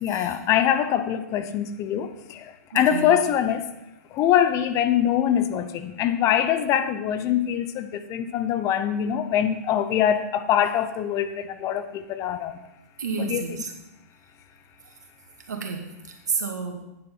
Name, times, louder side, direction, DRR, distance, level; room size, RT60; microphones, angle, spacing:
voice 1, 0.0-3.6 4.1-12.6 13.2-13.4, left 10 dB, 35° left, 10 dB, 0.8 m, -23 dB
voice 2, 13.0-13.7 14.8-14.9 15.5-15.8 16.3-16.8, right 5 dB, 80° right, 3 dB, 2.0 m, -30 dB
9.4 x 7.8 x 5.6 m, 0.91 s
hypercardioid pair, 115°, 9 cm